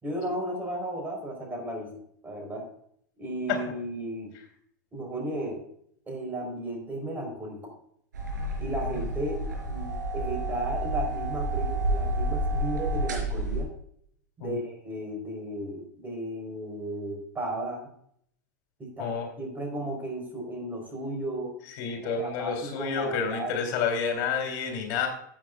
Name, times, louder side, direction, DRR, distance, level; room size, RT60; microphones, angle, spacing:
voice 1, 0.0-1.9 2.2-2.7 3.2-4.3 4.9-5.6 6.1-7.7 8.6-9.4 9.7-13.7 14.4-17.9 18.8-21.5 22.0-23.9, right 1 dB, 20° right, 2 dB, 4.3 m, -34 dB
sound 1, 8.1-13.6, right 1 dB, 90° right, 4.3 m, -30 dB
voice 2, 21.8-25.1, left 6 dB, 50° left, 4 dB, 3.3 m, -29 dB
14.5 x 8.8 x 2.4 m, 0.67 s
hypercardioid pair, 110°, 10 cm